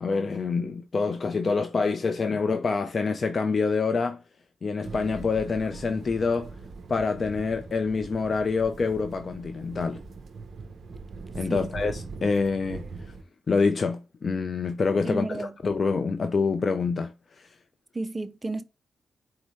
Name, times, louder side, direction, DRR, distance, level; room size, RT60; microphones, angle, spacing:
voice 1, 0.0-4.2 4.6-6.6 6.9-10.0 11.3-13.1 13.5-17.5, left 4 dB, 50° left, 0.5 m, -26 dB
sound 1, 4.8-13.2, right 4 dB, 60° right, 0.7 m, -41 dB
voice 2, 15.0-15.5 17.9-18.6, right 2 dB, 25° right, 0.5 m, -32 dB
4.5 x 2.7 x 3.1 m
cardioid pair, 70°, 0 cm